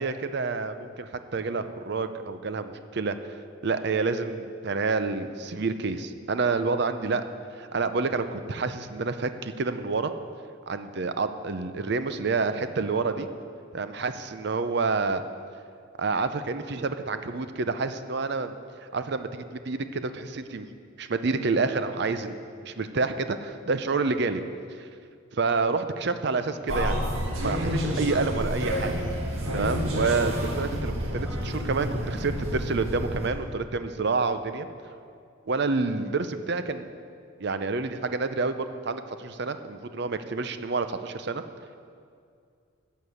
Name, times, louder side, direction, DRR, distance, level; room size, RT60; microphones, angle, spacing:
voice 1, 0.0-3.4 3.6-7.2 7.5-10.1 10.7-13.3 13.7-15.2 16.0-18.5 18.8-20.7 21.0-22.4 22.6-24.4 24.8-24.9 25.3-27.1 27.4-34.7 35.5-36.9 37.4-41.4, right 4 dB, 55° right, 10 dB, 0.6 m, -28 dB
sound 1, 26.7-33.3, equal, 80° right, 1.8 m, -29 dB
11.0 x 6.6 x 7.9 m, 2.3 s
head